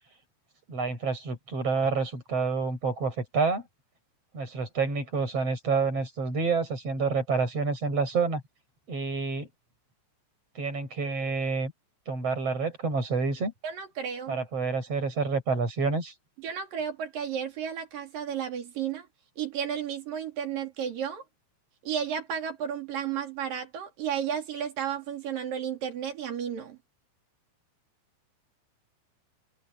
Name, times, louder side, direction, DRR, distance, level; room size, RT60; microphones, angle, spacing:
voice 1, 0.7-3.7 4.3-8.4 8.9-9.5 10.5-11.7 12.1-13.5 14.3-16.1, right 4 dB, 30° right, 8.4 m, -28 dB
voice 2, 13.6-14.4 16.4-19.1 19.4-21.2 21.8-26.8, right 8 dB, 50° right, 4.9 m, -33 dB
omnidirectional pair, 5.2 m